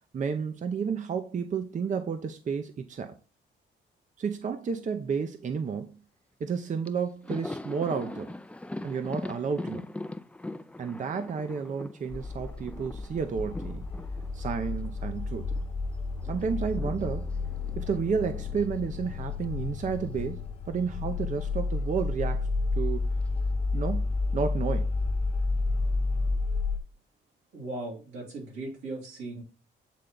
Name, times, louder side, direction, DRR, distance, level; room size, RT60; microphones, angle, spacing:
voice 1, 0.1-3.2 4.2-5.9 6.4-8.3 8.8-9.9 10.8-13.8 14.3-15.5 16.2-17.3 17.8-22.5 22.8-23.1 23.7-24.9, right 6 dB, 40° right, 0.7 m, -31 dB
Thunder, 6.5-6.6 6.8-15.7 15.9-20.2 20.5-20.7 21.8-22.5, left 2 dB, 5° left, 0.4 m, -42 dB
sound 1, 12.1-26.8, left 3 dB, 30° left, 1.0 m, -31 dB
voice 2, 27.5-29.4, right 2 dB, 85° right, 3.2 m, -38 dB
8.4 x 3.3 x 3.8 m
cardioid pair, 90°, 20 cm